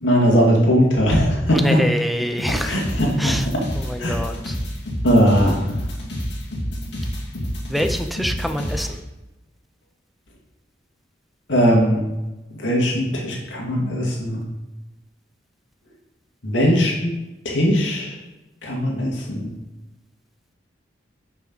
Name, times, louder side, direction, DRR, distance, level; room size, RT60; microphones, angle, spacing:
voice 1, 0.0-1.6 2.6-3.4 4.0-4.2 5.0-5.5 11.5-12.0 12.6-14.4 16.4-17.1 17.4-18.1 18.6-19.5, equal, 90° left, -2 dB, 2.2 m, -19 dB
voice 2, 1.5-2.8 3.2-3.5 3.7-4.6 7.7-9.0, equal, ahead, 6 dB, 0.6 m, -25 dB
sound 1, 2.4-8.9, equal, 65° left, 2.5 m, -28 dB
10.5 x 5.9 x 4.1 m, 1.1 s
head